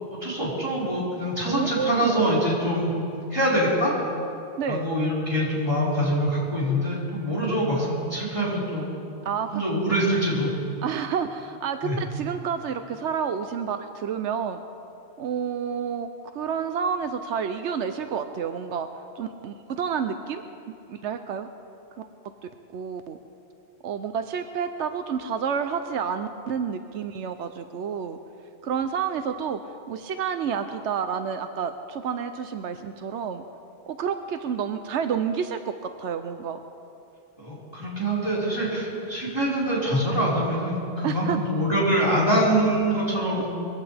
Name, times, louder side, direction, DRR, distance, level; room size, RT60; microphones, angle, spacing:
voice 1, 0.2-2.9 3.3-3.9 4.7-8.9 9.5-10.5 11.8-12.0 37.4-43.5, right 1 dB, 20° right, -8 dB, 4.9 m, -24 dB
voice 2, 1.5-2.3 4.6-4.9 9.2-9.6 10.8-14.6 15.2-18.9 19.2-21.5 22.0-22.1 22.7-23.2 23.8-28.2 28.6-29.6 29.9-33.4 33.9-36.6 41.0-41.4 43.4-43.5, right 7 dB, 85° right, 8 dB, 1.0 m, -29 dB
22.0 x 16.5 x 3.4 m, 2.7 s
omnidirectional pair, 1.1 m